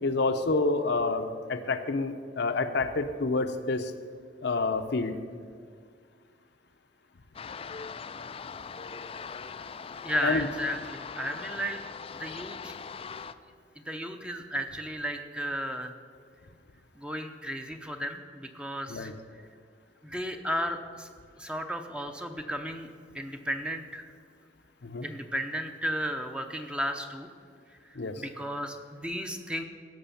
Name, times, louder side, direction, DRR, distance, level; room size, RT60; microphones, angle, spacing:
voice 1, 0.0-3.9 4.4-5.1 10.2-10.5 18.9-19.1 24.8-25.0 28.0-28.1, left 3 dB, 60° left, 7 dB, 0.7 m, -28 dB
sound 1, 7.3-13.3, left 5 dB, 30° left, 0.4 m, -41 dB
voice 2, 10.0-11.8 12.2-12.7 13.9-16.0 17.0-19.1 20.0-21.1 21.4-22.9 23.1-24.0 25.0-27.3 28.2-29.6, equal, 5° right, 6 dB, 0.7 m, -34 dB
16.0 x 6.2 x 7.0 m, 2.1 s
head